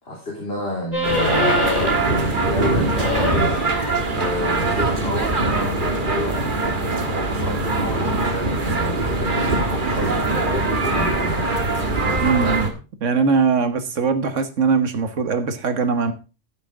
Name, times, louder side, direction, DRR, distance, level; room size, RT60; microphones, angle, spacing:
voice 1, 0.0-3.6 4.1-6.5 7.0-11.7, left 1 dB, 55° left, 3.7 m, -30 dB
sound 1, 0.9-2.2 2.5-6.2, left 3 dB, 30° left, 4.7 m, -27 dB
sound 2, 1.0-12.7, right 2 dB, 45° right, 1.7 m, -22 dB
voice 2, 12.2-12.7 13.0-16.1, right 5 dB, 85° right, 1.7 m, -21 dB
13.0 x 8.2 x 3.7 m
omnidirectional pair, 1.2 m